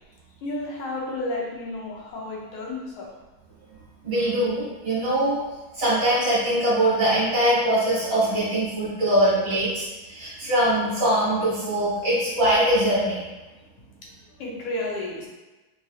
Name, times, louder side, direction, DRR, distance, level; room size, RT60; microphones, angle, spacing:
voice 1, 0.4-3.1 4.2-4.3 14.4-15.3, left 2 dB, 75° left, -4 dB, 1.5 m, -32 dB
voice 2, 4.0-5.4 5.7-13.2, right 1 dB, 45° right, -9 dB, 1.7 m, -22 dB
4.2 x 2.7 x 2.3 m, 1.1 s
omnidirectional pair, 2.4 m